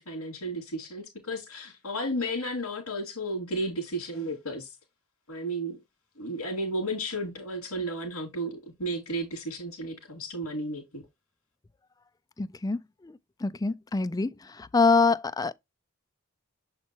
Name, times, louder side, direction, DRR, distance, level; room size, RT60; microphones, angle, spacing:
voice 1, 0.0-4.7 5.3-5.8 6.2-11.0, right 1 dB, 90° left, 2.6 m, -33 dB
voice 2, 12.4-13.1 13.4-14.3 14.6-15.5, left 4 dB, 15° left, 0.3 m, -25 dB
7.4 x 4.3 x 3.0 m
head